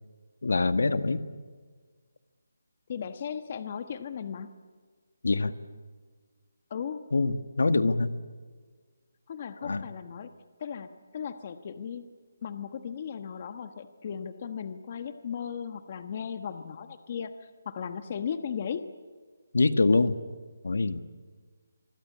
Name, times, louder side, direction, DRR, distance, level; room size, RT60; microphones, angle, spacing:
voice 1, 0.4-1.2 5.2-5.5 7.1-8.1 9.6-9.8 19.5-20.2 20.6-21.0, left 3 dB, 75° left, 10 dB, 1.8 m, -24 dB
voice 2, 2.9-4.5 6.7-7.0 9.3-10.3 10.6-12.1 12.4-18.8, left 7 dB, 30° left, 10 dB, 1.2 m, -36 dB
26.0 x 24.0 x 8.6 m, 1.5 s
hypercardioid pair, 175°, 0 cm